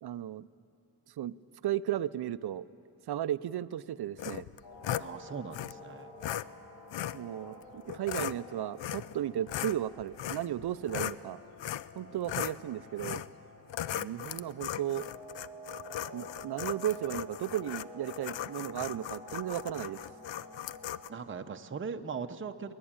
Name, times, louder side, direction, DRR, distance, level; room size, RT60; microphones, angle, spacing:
voice 1, 0.0-0.5 1.2-1.4 1.6-2.6 3.1-4.5 7.1-11.4 12.0-13.2 13.9-15.1 16.1-20.0, right 11 dB, 60° right, 15 dB, 0.6 m, -35 dB
sound 1, 4.2-5.1 5.5-5.7 6.2-6.4 6.9-7.2 7.9-8.4 8.8-9.2 9.5-11.2 11.6-11.9 12.2-12.6 13.0-13.3 13.7-21.1, left 11 dB, 80° left, 0.6 m, -37 dB
sound 2, 4.6-21.3, equal, 55° left, 5.9 m, -50 dB
voice 2, 5.0-6.1 21.1-22.7, right 5 dB, 30° right, 6 dB, 0.7 m, -39 dB
22.5 x 19.0 x 8.8 m, 2.7 s
wide cardioid pair, 125°, 43 cm